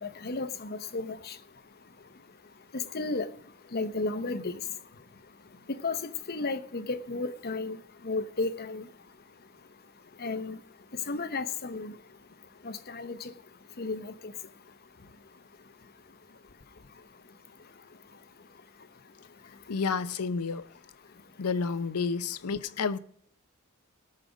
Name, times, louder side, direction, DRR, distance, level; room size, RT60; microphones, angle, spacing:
voice 1, 0.0-1.4 2.7-3.3 3.7-4.6 5.7-7.8 8.0-8.8 10.2-10.6 11.1-11.9 12.6-13.3 13.8-14.3, left 3 dB, 45° left, 0.8 m, -33 dB
voice 2, 19.7-20.6 21.4-23.0, left 5 dB, 90° left, 0.7 m, -30 dB
18.5 x 6.6 x 5.1 m
head